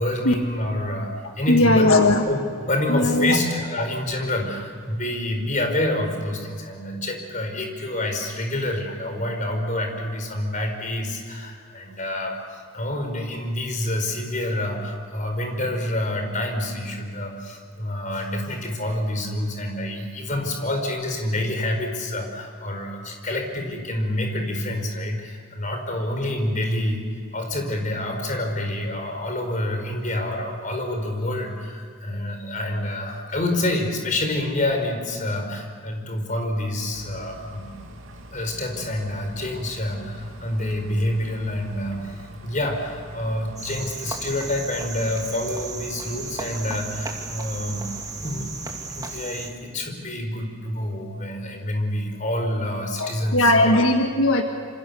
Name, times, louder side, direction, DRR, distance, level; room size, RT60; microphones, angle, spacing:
voice 1, 0.0-27.0 27.3-37.7 38.3-47.9 48.2-48.5 48.9-53.7, left 1 dB, 40° left, 4 dB, 4.9 m, -27 dB
voice 2, 1.5-2.3 2.9-3.4 53.0-54.4, left 1 dB, 75° left, 4 dB, 1.6 m, -18 dB
sound 1, 36.9-49.2, right 1 dB, 80° right, 2.6 m, -44 dB
Cricket, 43.6-49.5, right 3 dB, 20° right, 2.4 m, -35 dB
27.5 x 26.5 x 7.0 m, 2.2 s
head